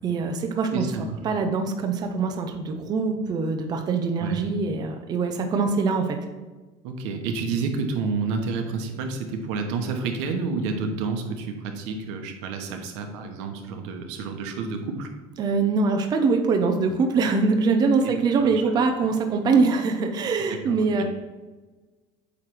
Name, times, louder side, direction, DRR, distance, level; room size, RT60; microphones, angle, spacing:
voice 1, 0.0-0.8 1.2-6.2 15.4-21.0, right 4 dB, 30° right, 4 dB, 0.6 m, -23 dB
voice 2, 0.7-1.2 4.2-4.4 6.8-15.1 18.0-18.1 18.4-18.5 20.5-21.0, right 4 dB, 85° right, 5 dB, 1.1 m, -29 dB
8.4 x 3.2 x 6.0 m, 1.3 s
cardioid pair, 150°, 15 cm